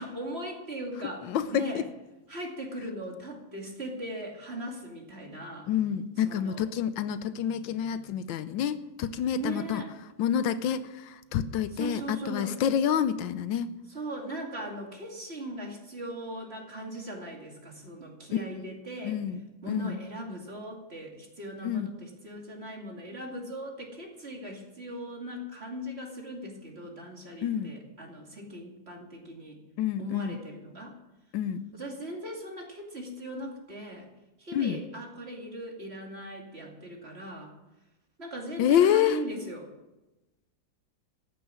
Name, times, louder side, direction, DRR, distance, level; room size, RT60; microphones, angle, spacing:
voice 1, 0.0-1.8 2.3-5.7 6.3-6.6 9.3-9.9 11.7-12.6 13.9-19.2 19.6-29.6 30.0-30.9 31.7-34.1 34.4-37.5 38.2-39.7, right 1 dB, 35° right, 0 dB, 2.6 m, -39 dB
voice 2, 1.2-1.8 5.7-9.8 10.2-13.7 19.0-19.4 19.7-20.0 21.6-21.9 27.4-27.7 29.8-30.4 31.3-31.7 34.5-34.8 38.6-39.2, left 9 dB, 85° left, 13 dB, 1.4 m, -28 dB
13.5 x 9.6 x 6.2 m, 0.99 s
omnidirectional pair, 2.1 m